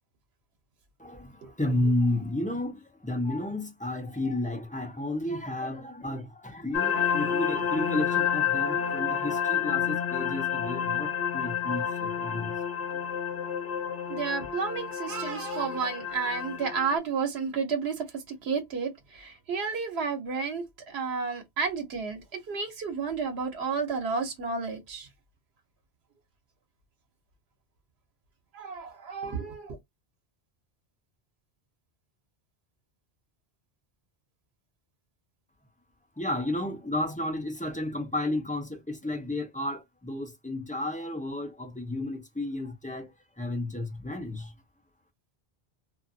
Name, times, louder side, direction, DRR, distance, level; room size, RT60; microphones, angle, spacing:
voice 1, 1.0-1.3 1.6-12.5 36.2-43.1 43.4-44.5, left 1 dB, 10° left, 0.5 m, -32 dB
sound 1, 6.7-17.0, left 8 dB, 65° left, 1.0 m, -29 dB
voice 2, 14.1-18.1 18.4-22.2 22.5-25.1 28.5-29.8, right 5 dB, 85° right, 1.0 m, -31 dB
2.6 x 2.4 x 2.5 m
omnidirectional pair, 1.0 m